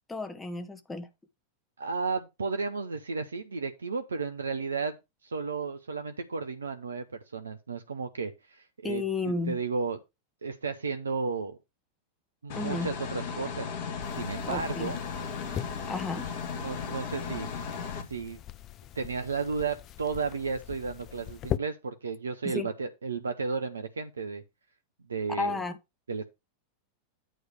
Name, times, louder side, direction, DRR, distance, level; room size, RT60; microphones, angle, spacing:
voice 1, 0.1-1.1 8.8-9.6 12.6-12.9 14.4-14.9 15.9-16.3 22.4-22.7 25.3-25.8, left 3 dB, 10° left, 0.9 m, -32 dB
voice 2, 1.8-5.0 5.2-7.0 7.3-9.0 9.5-10.0 10.4-11.6 12.4-13.7 14.1-15.0 16.6-17.5 18.1-18.4 19.0-24.4 25.1-25.6 26.1-26.2, right 4 dB, 75° right, 0.7 m, -33 dB
sound 1, 12.5-18.0, left 5 dB, 50° left, 1.7 m, -36 dB
sound 2, 14.0-21.6, left 11 dB, 35° left, 0.5 m, -41 dB
9.2 x 3.1 x 6.5 m
figure-of-eight pair, 90°, 0 cm